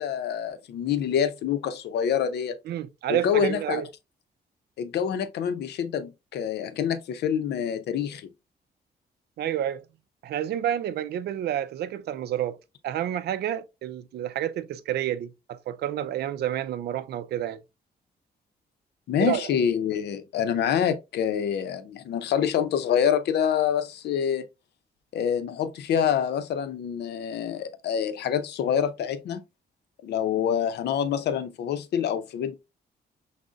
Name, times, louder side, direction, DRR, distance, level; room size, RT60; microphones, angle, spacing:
voice 1, 0.0-2.6 3.1-3.8 4.8-8.3 19.1-24.5 25.1-29.4 30.0-32.6, left 8 dB, 85° left, 0.5 m, -26 dB
voice 2, 2.7-3.9 9.4-9.8 10.2-12.6 12.8-17.6 19.2-19.4, right 11 dB, 80° right, 0.4 m, -29 dB
6.1 x 2.1 x 2.4 m
cardioid pair, 115°, 17 cm